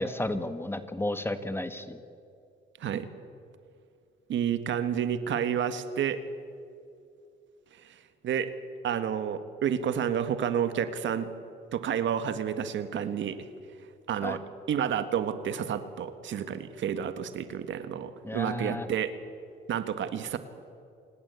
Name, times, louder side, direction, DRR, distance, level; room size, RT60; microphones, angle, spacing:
voice 1, 0.0-2.0 14.2-14.4 18.2-18.9, left 1 dB, 10° left, 10 dB, 1.7 m, -32 dB
voice 2, 4.3-6.2 7.8-8.0 8.2-8.5 8.8-11.3 11.7-13.4 14.1-14.4 14.7-19.1 19.7-20.4, right 8 dB, 70° right, 10 dB, 1.8 m, -30 dB
28.5 x 19.5 x 8.4 m, 2.4 s
cardioid pair, 90°, 20 cm